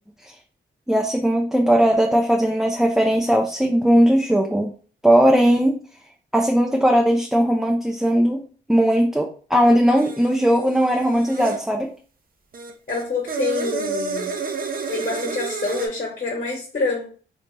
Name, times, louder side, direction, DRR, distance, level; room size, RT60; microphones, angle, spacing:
voice 1, 0.9-4.7 5.0-5.8 6.3-8.4 8.7-11.9, equal, ahead, 1 dB, 0.4 m, -18 dB
sound 1, 10.0-11.6 12.5-15.9, right 4 dB, 45° right, 0.6 m, -30 dB
voice 2, 12.9-14.3 14.9-17.0, left 3 dB, 45° left, -2 dB, 1.2 m, -26 dB
3.3 x 2.6 x 3.2 m, 0.41 s
cardioid pair, 95°, 20 cm